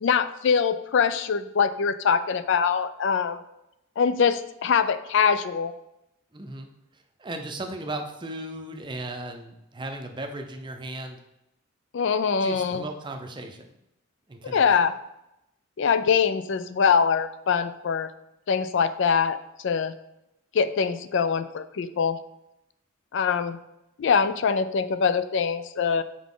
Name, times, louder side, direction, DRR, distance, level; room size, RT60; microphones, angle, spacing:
voice 1, 0.0-3.4 4.0-5.7 11.9-12.8 14.4-14.9 15.8-18.1 18.5-19.9 20.5-22.2 23.1-23.6 24.0-26.0, left 6 dB, 60° left, 12 dB, 0.3 m, -23 dB
voice 2, 6.3-6.7 7.2-11.2 12.4-13.7 14.3-14.6, right 2 dB, 20° right, 4 dB, 0.6 m, -36 dB
6.0 x 4.8 x 3.7 m, 0.86 s
head